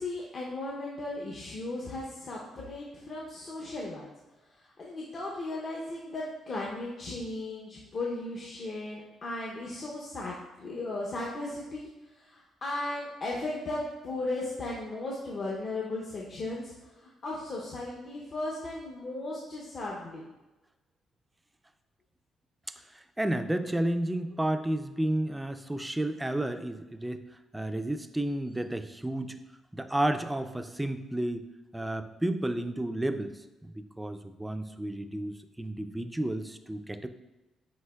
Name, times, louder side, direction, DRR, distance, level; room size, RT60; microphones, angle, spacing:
voice 1, 0.0-4.1 4.8-11.9 12.2-16.7 17.0-20.2, left 2 dB, 50° left, -3 dB, 0.6 m, -36 dB
voice 2, 22.9-27.2 27.5-29.4 29.7-31.4 31.7-37.1, right 1 dB, 10° right, 8 dB, 0.3 m, -32 dB
7.8 x 2.9 x 2.3 m, 1.1 s
cardioid pair, 90°, 0 cm